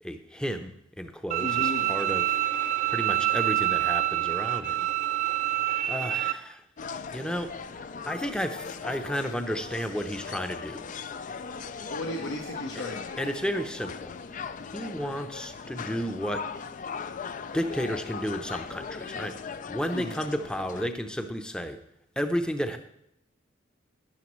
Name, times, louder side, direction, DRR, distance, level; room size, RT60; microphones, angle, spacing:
voice 1, 0.0-0.7 1.0-2.4 2.9-4.9 5.2-5.4 5.8-6.6 7.1-10.8 13.2-16.5 17.5-21.8 22.2-22.8, equal, 5° left, 7 dB, 0.7 m, -32 dB
Bowed string instrument, 1.3-6.3, right 13 dB, 40° right, 0.4 m, -26 dB
voice 2, 1.4-1.9 11.9-13.2 19.9-20.2, left 1 dB, 70° left, 0 dB, 1.1 m, -35 dB
sound 1, 6.8-20.9, left 5 dB, 40° left, 0.4 m, -39 dB
13.0 x 10.5 x 3.2 m, 0.78 s
head